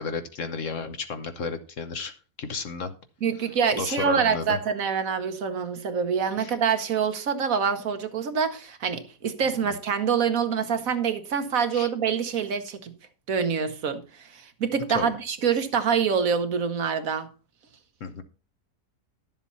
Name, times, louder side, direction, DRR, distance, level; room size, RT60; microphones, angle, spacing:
voice 1, 0.0-2.1 2.4-2.9 3.8-4.6 6.4-6.5 11.7-11.9 14.9-15.1 18.0-18.2, left 4 dB, 55° left, 1.2 m, -32 dB
voice 2, 3.2-12.9 13.3-17.3, right 6 dB, 60° right, 1.4 m, -26 dB
11.5 x 7.3 x 4.1 m
omnidirectional pair, 1.7 m